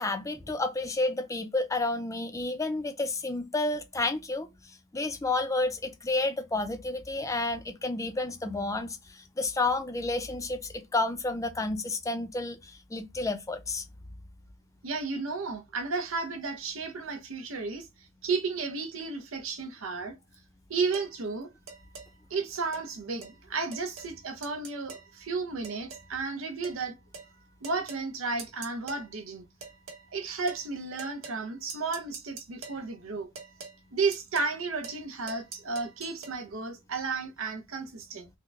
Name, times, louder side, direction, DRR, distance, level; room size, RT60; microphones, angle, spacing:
voice 1, 0.0-4.5 4.9-13.8, left 2 dB, 15° left, 0.4 m, -30 dB
voice 2, 14.8-17.9 18.2-20.2 20.7-21.5 22.3-27.0 27.6-29.4 30.1-33.3 33.9-38.3, right 4 dB, 75° right, 0.7 m, -33 dB
sound 1, 20.9-21.1 21.7-22.1 22.7-22.9 23.2-23.4 23.7-24.2 24.4-25.1 25.6-26.1 26.6-26.8 27.1-27.3 27.6-28.1 28.4-29.1 29.6-30.1 30.5-30.7 31.0-31.4 31.7-32.8 33.4-33.8 34.1-34.6 34.8-35.0 35.3-36.4, right 4 dB, 90° right, 1.1 m, -44 dB
3.7 x 2.2 x 3.2 m
head